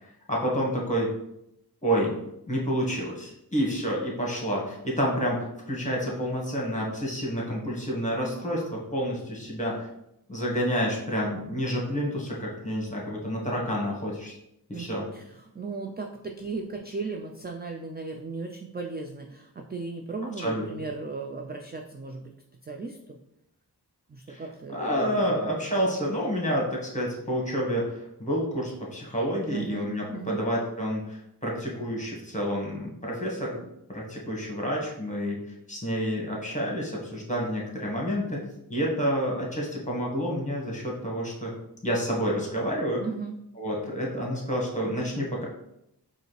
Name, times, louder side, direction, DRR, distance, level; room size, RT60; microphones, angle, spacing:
voice 1, 0.3-1.1 1.8-2.1 2.5-9.9 10.3-14.3 14.7-15.1 20.4-20.7 24.3-24.4 24.7-33.6 33.9-35.4 35.7-38.4 38.7-41.5 41.8-43.0 43.6-45.5, equal, 20° left, -3 dB, 1.5 m, -29 dB
voice 2, 14.7-22.3 22.6-23.2 24.1-25.3 29.5-30.4 43.0-43.4, right 4 dB, 25° right, 2 dB, 0.4 m, -36 dB
4.9 x 2.6 x 3.2 m, 0.80 s
wide cardioid pair, 50°, 41 cm